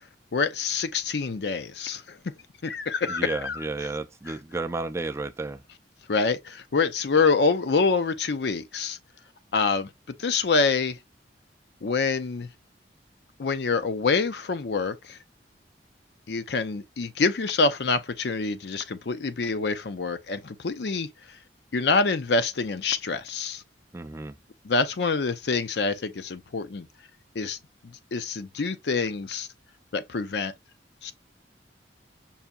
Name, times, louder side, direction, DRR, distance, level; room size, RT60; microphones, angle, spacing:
voice 1, 0.3-2.3 2.6-3.6 6.1-9.0 9.5-9.9 10.2-11.0 11.8-12.5 13.4-15.2 16.3-21.1 21.7-23.6 24.6-26.9 27.3-27.6 28.1-29.5 29.9-30.5 31.0-31.1, left 4 dB, 70° left, 0.5 m, -26 dB
voice 2, 3.1-5.6 23.9-24.4, right 3 dB, 15° right, 0.4 m, -32 dB
5.6 x 2.6 x 2.4 m
head